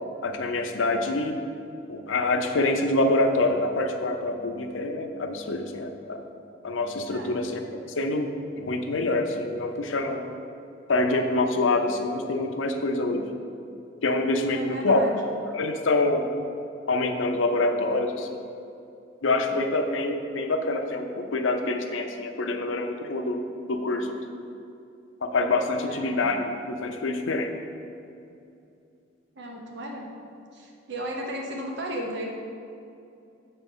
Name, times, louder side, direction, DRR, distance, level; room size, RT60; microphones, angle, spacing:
voice 1, 0.2-1.4 1.9-6.2 6.6-7.6 8.0-8.3 8.6-10.2 10.9-13.2 14.0-15.0 15.5-16.3 16.9-18.4 19.2-23.4 23.7-24.1 25.2-27.5, left 2 dB, 85° left, 5 dB, 0.6 m, -26 dB
voice 2, 14.5-15.1 15.5-15.6 25.9-26.1 29.4-30.1 30.5-32.3, equal, 65° right, 1 dB, 0.8 m, -34 dB
7.2 x 4.4 x 5.4 m, 2.6 s
head